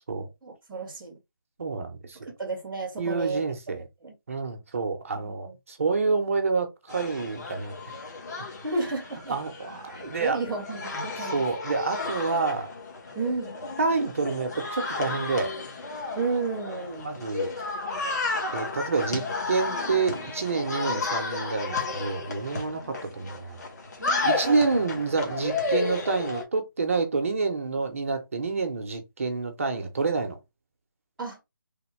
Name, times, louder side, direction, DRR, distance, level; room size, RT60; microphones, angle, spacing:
voice 1, 0.4-1.2 2.1-3.7 4.0-4.1 5.2-5.5 8.6-9.4 9.9-11.5 13.1-13.5 16.2-17.1 19.1-19.2 19.8-19.9 24.0-24.6 31.2-31.4, right 3 dB, ahead, 0.3 m, -33 dB
voice 2, 1.6-2.2 3.0-3.8 4.3-7.8 9.3-10.4 11.3-12.7 13.8-15.5 17.0-17.5 18.5-23.6 24.2-30.4, right 4 dB, 40° right, 0.7 m, -28 dB
sound 1, 6.9-26.4, left 3 dB, 50° left, 1.2 m, -33 dB
3.5 x 2.2 x 3.1 m
figure-of-eight pair, 170°, 11 cm